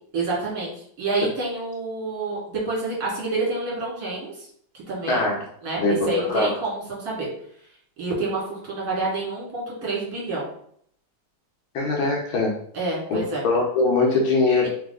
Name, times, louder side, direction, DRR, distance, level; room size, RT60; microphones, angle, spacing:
voice 1, 0.1-4.5 4.9-5.3 5.6-7.3 8.0-10.5 12.7-13.4, right 3 dB, 50° right, -5 dB, 2.2 m, -28 dB
voice 2, 5.8-6.5 11.7-12.5 13.1-14.7, left 3 dB, 80° left, -1 dB, 1.8 m, -22 dB
3.9 x 3.3 x 3.8 m, 0.65 s
omnidirectional pair, 2.2 m